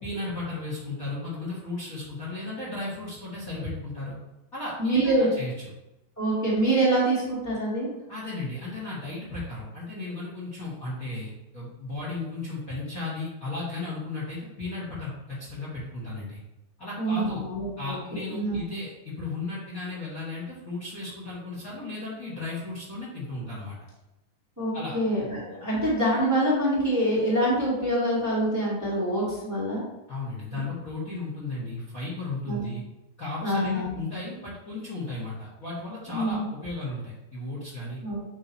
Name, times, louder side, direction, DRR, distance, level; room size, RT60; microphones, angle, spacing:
voice 1, 0.0-4.2 4.5-5.5 8.1-16.4 16.8-17.4 17.8-23.8 24.7-25.0 30.1-32.8 33.2-38.0, left 2 dB, 40° left, -7 dB, 1.2 m, -35 dB
voice 2, 4.8-5.3 6.2-7.9 17.0-18.0 18.3-18.6 24.6-29.8 30.5-30.6 32.5-32.7 33.4-33.9 36.1-36.5 38.0-38.2, right 1 dB, 5° right, -8 dB, 1.5 m, -25 dB
8.7 x 3.2 x 4.1 m, 0.94 s
omnidirectional pair, 4.2 m